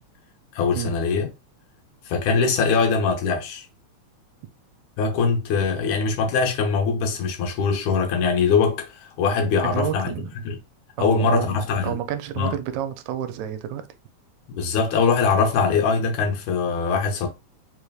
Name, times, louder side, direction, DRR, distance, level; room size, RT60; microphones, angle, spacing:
voice 1, 0.5-1.3 2.1-3.7 5.0-10.1 10.4-10.6 11.0-12.0 12.4-12.5 14.5-17.3, left 5 dB, 85° left, 2.4 m, -22 dB
voice 2, 9.6-10.3 11.0-13.8, right 10 dB, 80° right, 1.9 m, -29 dB
4.9 x 3.3 x 2.3 m
omnidirectional pair, 3.3 m